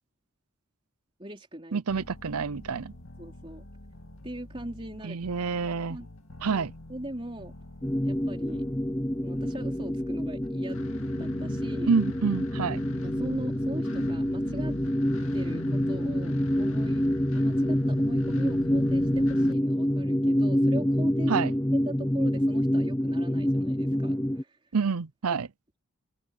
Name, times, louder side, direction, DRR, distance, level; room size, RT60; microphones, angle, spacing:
voice 1, 1.2-1.8 3.2-3.7 4.2-5.5 5.9-6.1 6.4-7.5 8.0-8.6 9.2-11.9 13.0-14.8 15.3-17.0 17.3-21.4 21.7-24.7, right 1 dB, 25° right, 4.1 m, -40 dB
voice 2, 1.7-2.9 5.0-6.0 6.4-6.7 11.9-12.8 21.3-21.5 24.7-25.5, right 5 dB, 85° right, 0.7 m, -27 dB
sound 1, 1.9-19.5, left 1 dB, 65° left, 2.3 m, -41 dB
sound 2, 7.8-24.4, equal, 10° left, 0.7 m, -27 dB
head